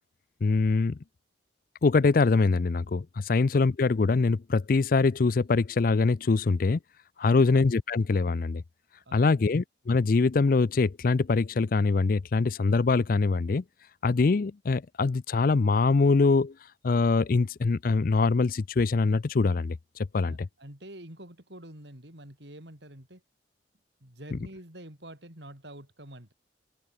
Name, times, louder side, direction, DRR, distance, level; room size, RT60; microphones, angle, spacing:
voice 1, 0.4-1.0 1.8-6.8 7.2-8.6 9.1-13.6 14.0-16.5 16.8-19.8 20.1-20.5, left 4 dB, 50° left, 0.4 m, -23 dB
voice 2, 7.2-7.6 9.1-9.5 20.2-23.2 24.0-26.3, right 1 dB, 65° right, 6.0 m, -47 dB
head